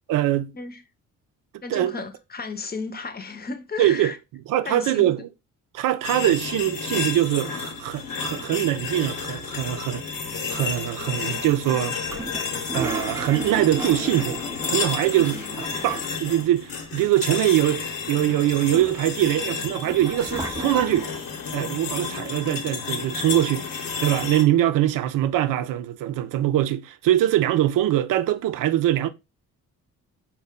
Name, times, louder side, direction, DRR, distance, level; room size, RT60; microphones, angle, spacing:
voice 1, 0.1-0.5 1.7-1.9 3.8-4.1 4.5-5.2 5.7-12.0 12.7-21.1 21.5-29.1, right 13 dB, 70° right, 0.5 m, -23 dB
voice 2, 1.6-4.2 4.6-5.3 15.2-15.5, left 4 dB, 30° left, 0.7 m, -34 dB
sound 1, 6.0-24.4, left 5 dB, 85° left, 1.0 m, -31 dB
Toilet flush, 12.1-16.4 16.7-16.8 17.0-17.8 18.4-21.2, right 3 dB, 10° right, 0.4 m, -35 dB
4.3 x 2.2 x 3.6 m
supercardioid pair, 65°, 33 cm